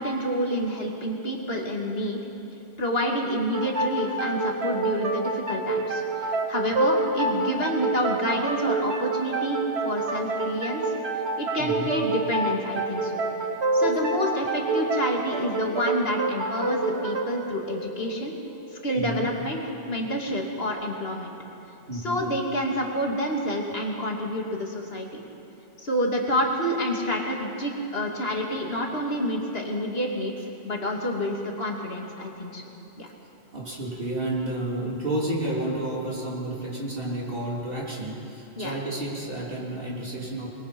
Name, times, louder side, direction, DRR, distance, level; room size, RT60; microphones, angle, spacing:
voice 1, 0.0-2.2 2.8-10.9 11.4-13.2 13.7-18.4 18.7-19.6 19.9-21.3 21.9-25.2 25.8-30.3 30.6-32.6 33.0-33.1 38.6-38.8, equal, 60° left, 0 dB, 2.8 m, -28 dB
sound 1, 3.5-18.9, right 2 dB, 70° right, 1.8 m, -28 dB
voice 2, 11.6-12.0 18.9-19.3 21.9-22.2 33.5-40.5, right 1 dB, 55° right, -4 dB, 3.8 m, -31 dB
27.0 x 21.5 x 5.4 m, 2.9 s
omnidirectional pair, 1.2 m